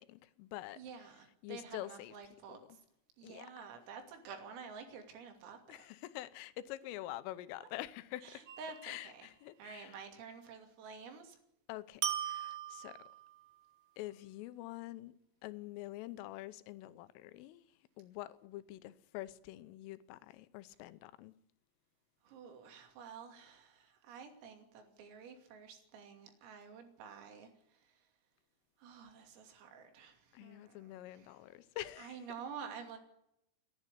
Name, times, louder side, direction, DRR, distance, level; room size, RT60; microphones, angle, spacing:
voice 1, 0.0-0.8 1.4-2.1 2.7-2.8 3.2-3.5 5.7-8.4 8.8-10.0 11.7-13.0 14.0-15.2 15.4-17.7 18.0-21.3 30.3-32.2, left 15 dB, 80° left, 3.4 m, -46 dB
voice 2, 0.8-2.8 3.2-5.9 7.6-7.7 8.2-9.3 9.6-11.4 22.2-28.1 28.8-31.4 32.0-33.0, right 6 dB, 80° right, 5.4 m, -50 dB
sound 1, 8.5-9.2 12.0-13.4, right 11 dB, 55° right, 2.8 m, -40 dB
29.5 x 11.0 x 8.3 m
omnidirectional pair, 5.9 m